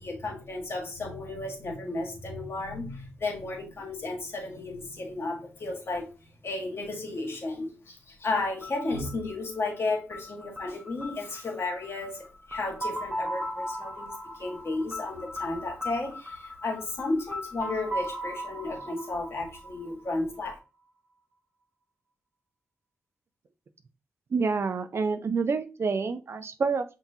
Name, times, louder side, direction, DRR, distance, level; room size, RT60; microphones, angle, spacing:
voice 1, 0.0-20.6, left 2 dB, 55° left, 0 dB, 1.7 m, -33 dB
sound 1, 8.6-20.4, equal, 25° right, 1.6 m, -38 dB
voice 2, 24.3-26.8, right 4 dB, 55° right, 9 dB, 0.5 m, -28 dB
5.9 x 2.9 x 2.8 m, 0.31 s
cardioid pair, 70°, 5 cm